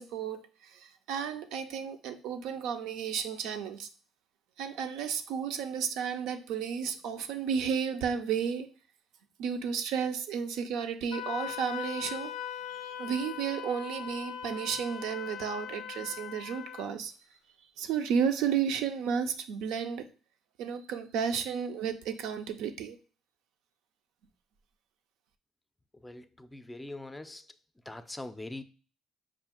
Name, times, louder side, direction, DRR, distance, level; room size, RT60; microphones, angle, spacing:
voice 1, 0.0-3.9 4.6-8.7 9.4-12.3 12.6-17.1 17.8-20.1 20.6-23.0, right 7 dB, 75° right, 0.5 m, -33 dB
Wind instrument woodwind instrument, 11.1-16.9, left 9 dB, 75° left, 0.4 m, -40 dB
voice 2, 26.0-27.5 27.9-28.6, left 2 dB, 10° left, 0.4 m, -42 dB
5.0 x 2.4 x 3.6 m
supercardioid pair, 75°, 0 cm